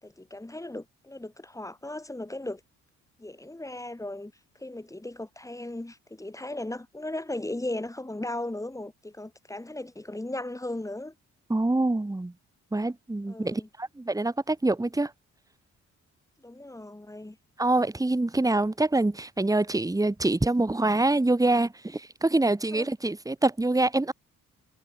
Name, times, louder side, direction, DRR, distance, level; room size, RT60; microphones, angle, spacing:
voice 1, 0.0-2.6 3.2-4.3 4.6-11.1 13.3-13.7 16.4-17.4 22.7-22.9, left 1 dB, 10° left, 4.4 m, -37 dB
voice 2, 11.5-12.3 12.7-15.1 17.6-24.1, right 2 dB, 10° right, 2.5 m, -25 dB
cardioid pair, 90°, 30 cm